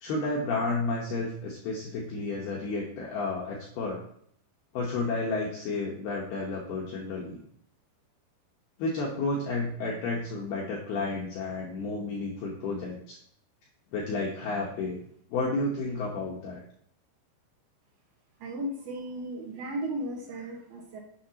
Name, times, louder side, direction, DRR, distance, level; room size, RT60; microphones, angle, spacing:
voice 1, 0.0-4.0 4.7-7.4 8.8-13.2 13.9-15.0 15.3-16.6, left 3 dB, 75° left, -2 dB, 2.4 m, -31 dB
voice 2, 18.4-21.0, right 1 dB, 65° right, -1 dB, 2.8 m, -35 dB
11.0 x 7.5 x 2.9 m, 0.66 s
omnidirectional pair, 6.0 m